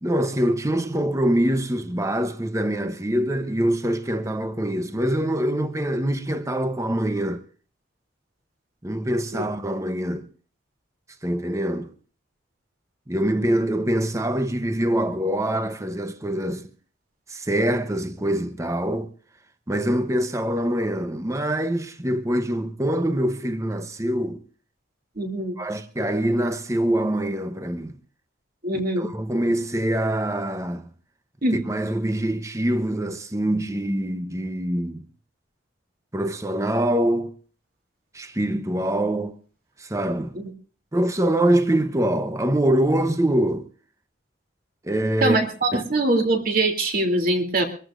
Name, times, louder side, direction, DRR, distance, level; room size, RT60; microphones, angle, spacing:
voice 1, 0.0-7.4 8.8-10.3 11.2-11.9 13.1-16.7 17.3-19.1 19.7-24.4 25.6-27.9 29.0-30.9 31.5-35.0 36.1-37.3 38.1-39.3 39.8-40.4 40.9-43.7 44.8-45.4 45.7-45.8, right 1 dB, 15° right, 0.8 m, -24 dB
voice 2, 25.2-25.5 28.6-29.1 31.4-31.6 40.4-40.5 45.2-47.6, right 2 dB, 45° right, 3.0 m, -22 dB
25.5 x 14.0 x 2.6 m
head